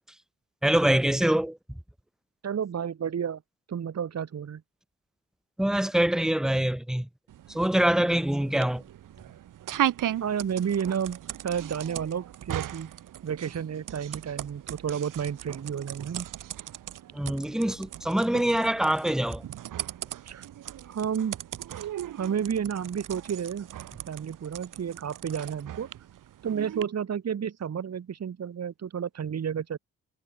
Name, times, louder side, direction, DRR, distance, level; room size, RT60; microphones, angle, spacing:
voice 1, 0.6-1.6 5.6-7.1 7.5-8.8 17.1-19.4, right 1 dB, ahead, 0.8 m, -24 dB
voice 2, 2.4-3.4 3.7-4.6 10.2-11.2 11.4-12.9 13.2-16.3 20.2-20.5 20.8-21.4 22.1-23.7 24.1-25.9 26.4-29.8, right 8 dB, 50° right, 2.3 m, -31 dB
sound 1, 7.3-26.8, right 12 dB, 70° right, 1.1 m, -37 dB
cardioid pair, 100°, 34 cm